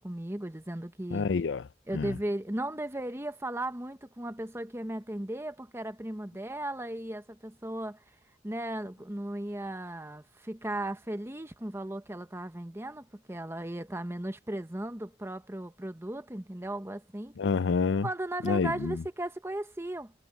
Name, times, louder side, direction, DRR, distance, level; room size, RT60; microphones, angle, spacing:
voice 1, 0.0-1.3 1.9-8.0 8.4-17.4 18.0-20.1, right 1 dB, 15° right, 1.0 m, -36 dB
voice 2, 1.1-1.7 1.9-2.2 17.4-18.1 18.4-19.0, left 4 dB, 80° left, 0.5 m, -28 dB
head